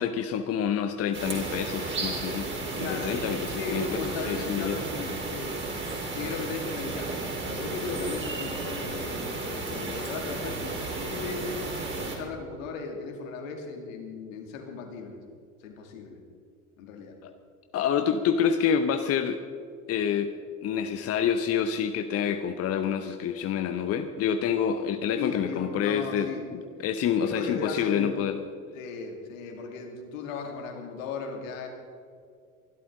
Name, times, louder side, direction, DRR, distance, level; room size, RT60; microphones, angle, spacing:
voice 1, 0.0-4.0 4.3-4.7 17.2-17.3 17.7-19.4 19.9-20.3 20.6-28.4, left 8 dB, 35° left, 8 dB, 0.9 m, -27 dB
sound 1, 1.1-12.2, right 3 dB, 25° right, 4.3 m, -33 dB
voice 2, 2.7-3.1 3.6-5.6 6.1-7.1 7.4-11.5 12.0-15.2 15.6-16.2 16.8-17.1 25.2-26.5 27.2-28.1 28.7-31.7, left 4 dB, 65° left, 3 dB, 2.7 m, -36 dB
24.0 x 12.5 x 3.9 m, 2.3 s
figure-of-eight pair, 70°, 44 cm